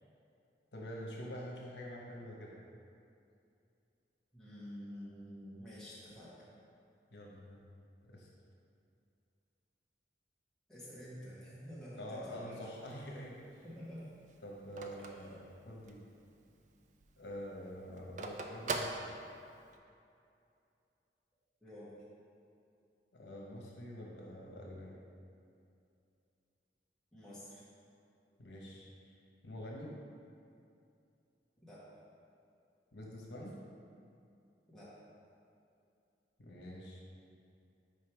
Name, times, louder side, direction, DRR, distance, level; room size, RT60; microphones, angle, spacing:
voice 1, 0.7-2.6 7.1-7.7 8.1-8.3 12.0-13.6 14.4-16.0 17.2-19.1 23.1-25.0 28.4-29.1 29.4-29.9 32.9-33.6 36.4-37.0, equal, 85° left, -3 dB, 1.0 m, -46 dB
voice 2, 4.3-6.4 10.7-12.6 13.6-14.0 15.0-15.3 21.6-21.9 27.1-27.6 31.6-31.8 34.7-34.9, equal, 5° left, -10 dB, 1.4 m, -49 dB
Telephone, 12.7-16.1 16.5-16.6 16.9-19.8, right 3 dB, 45° right, 0.4 m, -42 dB
5.2 x 4.6 x 4.6 m, 2.6 s
head